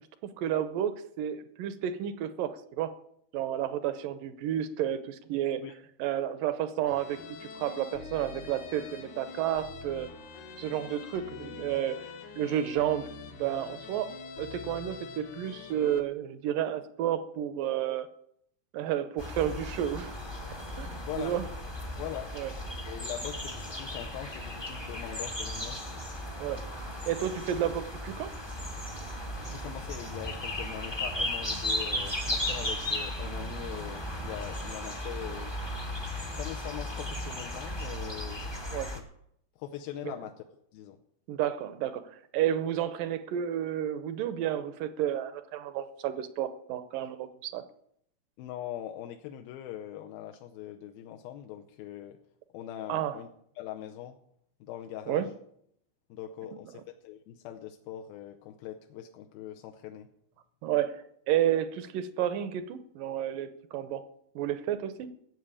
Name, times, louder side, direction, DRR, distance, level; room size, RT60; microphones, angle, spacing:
voice 1, 0.4-2.9 3.3-5.6 6.0-10.1 10.6-12.1 12.4-13.1 13.3-18.1 18.7-20.2 20.8-21.5 22.3-22.5 26.4-26.6 27.1-28.3 38.7-38.9 41.3-47.6 52.9-53.2 55.1-55.3 60.6-64.0 64.4-65.1, right 11 dB, 75° right, 12 dB, 2.2 m, -31 dB
sound 1, 6.9-16.0, left 5 dB, 60° left, 2.3 m, -44 dB
sound 2, 19.2-39.0, left 1 dB, 20° left, 0.6 m, -36 dB
voice 2, 21.0-21.4 22.0-22.3 22.9-25.8 29.4-35.5 36.4-38.4 39.6-40.3 40.7-41.0 48.4-52.2 52.5-53.3 53.6-54.2 54.6-55.3 56.1-60.1, left 11 dB, 80° left, 5 dB, 2.5 m, -41 dB
14.5 x 8.2 x 8.4 m, 0.72 s
omnidirectional pair, 4.5 m